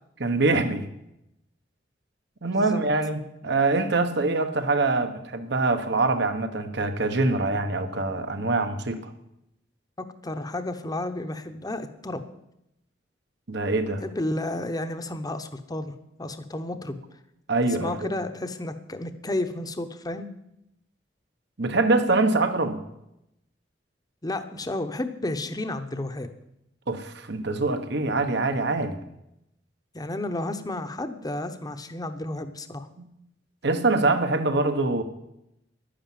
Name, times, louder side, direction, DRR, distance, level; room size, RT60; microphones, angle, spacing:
voice 1, 0.2-0.8 2.4-9.0 13.5-14.0 17.5-18.2 21.6-22.8 26.9-29.0 33.0-33.1 33.6-35.0, right 3 dB, 65° right, 8 dB, 1.3 m, -24 dB
voice 2, 10.0-12.2 14.0-15.9 16.2-17.0 17.7-20.3 24.2-26.3 29.9-32.9, left 1 dB, 20° left, 9 dB, 0.9 m, -32 dB
11.0 x 10.0 x 7.5 m, 0.84 s
head